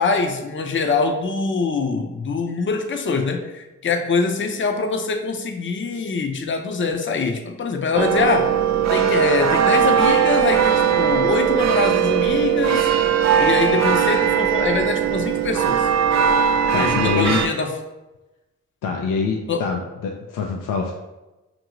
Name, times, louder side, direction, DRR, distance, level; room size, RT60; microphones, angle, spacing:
voice 1, 0.0-8.5 8.9-12.9 13.4-15.9 16.8-17.7 19.5-19.6, left 4 dB, 40° left, 5 dB, 0.6 m, -23 dB
sound 1, 7.9-17.5, right 8 dB, 60° right, 0.5 m, -19 dB
voice 2, 16.7-17.4 18.8-20.9, left 5 dB, 85° left, 1 dB, 0.5 m, -24 dB
5.2 x 2.6 x 2.9 m, 1.0 s
supercardioid pair, 45°, 32 cm